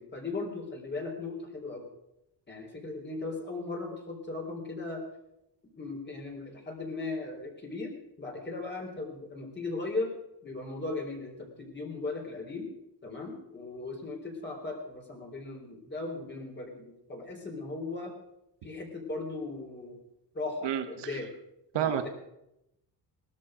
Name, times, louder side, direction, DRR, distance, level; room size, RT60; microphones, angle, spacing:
voice 1, 0.0-1.9 2.5-5.0 5.8-10.1 10.4-12.7 13.0-18.1 18.6-20.0 20.3-21.3 21.7-22.1, left 3 dB, 25° left, 1 dB, 4.0 m, -37 dB
voice 2, 20.6-21.1 21.7-22.1, right 10 dB, 80° right, 9 dB, 1.7 m, -30 dB
19.5 x 13.0 x 5.1 m, 0.86 s
cardioid pair, 130°, 42 cm